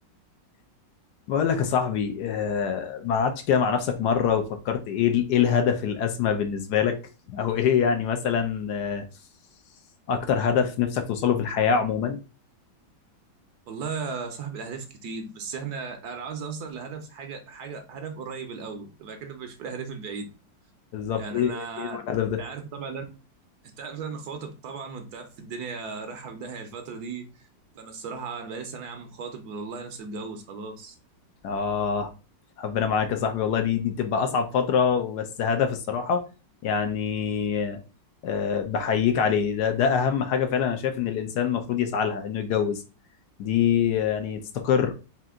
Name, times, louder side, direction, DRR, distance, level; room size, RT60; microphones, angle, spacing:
voice 1, 1.3-7.0 7.3-9.0 10.1-12.2 20.9-22.4 31.4-32.1 32.6-36.2 36.6-37.8 38.2-42.8 43.4-44.9, left 7 dB, 70° left, 1.1 m, -25 dB
voice 2, 13.7-20.3 21.2-22.0 22.4-23.0 23.8-27.3 27.7-30.9, right 5 dB, 65° right, 1.1 m, -36 dB
4.3 x 2.5 x 3.6 m
omnidirectional pair, 2.0 m